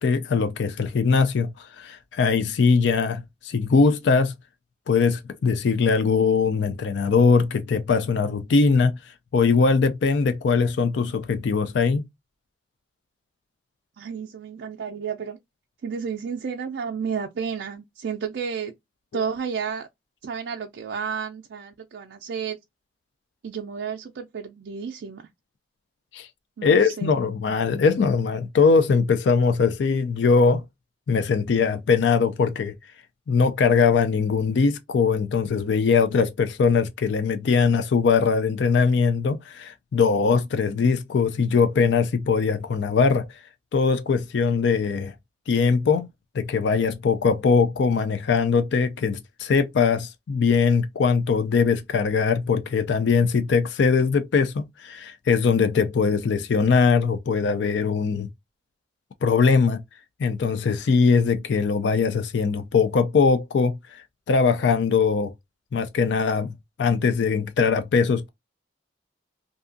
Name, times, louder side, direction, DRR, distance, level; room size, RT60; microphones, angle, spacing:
voice 1, 0.0-4.3 4.9-9.0 9.3-12.0 26.1-26.3 26.6-30.6 31.1-32.8 33.3-43.3 43.7-45.1 45.5-46.1 46.3-58.3 59.2-59.8 60.2-63.8 64.3-65.3 65.7-66.5 66.8-68.3, left 5 dB, 70° left, 0.4 m, -21 dB
voice 2, 14.0-15.4 15.8-18.7 19.1-19.9 20.2-22.6 23.4-25.3 26.6-27.2, right 6 dB, 75° right, 0.4 m, -31 dB
2.6 x 2.3 x 2.5 m
head